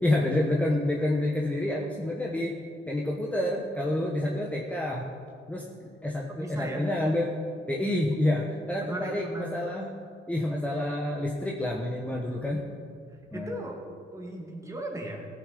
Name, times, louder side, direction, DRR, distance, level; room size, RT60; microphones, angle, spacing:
voice 1, 0.0-2.6 2.9-5.1 5.5-5.7 6.0-7.3 7.7-9.9 10.3-12.6 13.3-13.6, left 1 dB, 5° left, -1 dB, 1.1 m, -28 dB
voice 2, 6.3-6.8 8.8-9.6 13.1-13.8 14.1-15.3, right 1 dB, 15° right, 0 dB, 2.3 m, -37 dB
16.0 x 6.8 x 5.4 m, 2.2 s
cardioid pair, 90°, 20 cm